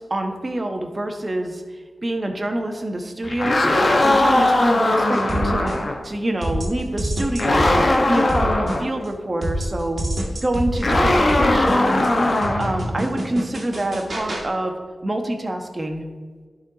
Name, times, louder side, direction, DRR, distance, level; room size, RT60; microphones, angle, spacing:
voice 1, 0.0-3.7 4.0-5.7 6.0-10.0 10.4-12.1 12.6-14.7 15.0-16.0, right 1 dB, 40° right, 4 dB, 1.2 m, -26 dB
sound 1, 3.2-6.0 7.4-8.9 10.8-12.8, left 1 dB, 50° left, 1.2 m, -19 dB
sound 2, 5.1-6.1 6.4-9.1 9.4-14.5, right 1 dB, 65° right, 1.7 m, -27 dB
11.5 x 4.3 x 4.0 m, 1.5 s
cardioid pair, 45°, 0 cm